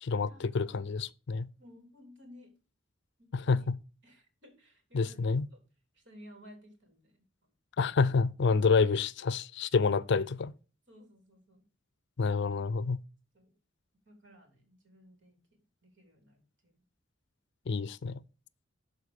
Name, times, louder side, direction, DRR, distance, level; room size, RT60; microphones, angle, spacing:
voice 1, 0.0-1.5 3.3-3.7 4.9-5.5 7.8-10.5 12.2-13.0 17.7-18.2, left 4 dB, 60° left, 0.5 m, -28 dB
voice 2, 1.6-2.5 3.2-3.7 4.0-5.2 5.5-5.6 5.9-7.2 10.9-11.6 13.3-13.6 14.1-16.8, left 1 dB, 65° right, 3.5 m, -56 dB
12.5 x 4.5 x 4.8 m
head